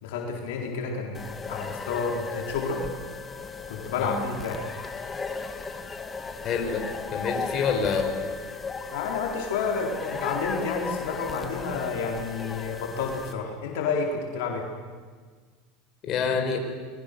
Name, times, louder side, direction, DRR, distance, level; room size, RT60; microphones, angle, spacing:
voice 1, 0.0-2.8 3.7-4.7 8.9-14.6, left 5 dB, 75° left, 0 dB, 4.0 m, -30 dB
sound 1, 1.1-13.3, left 4 dB, 20° left, 1.9 m, -35 dB
voice 2, 6.4-6.8 7.1-8.1 16.0-16.6, left 6 dB, 45° left, 3 dB, 4.5 m, -27 dB
28.0 x 21.0 x 6.9 m, 1.5 s
supercardioid pair, 105°, 0 cm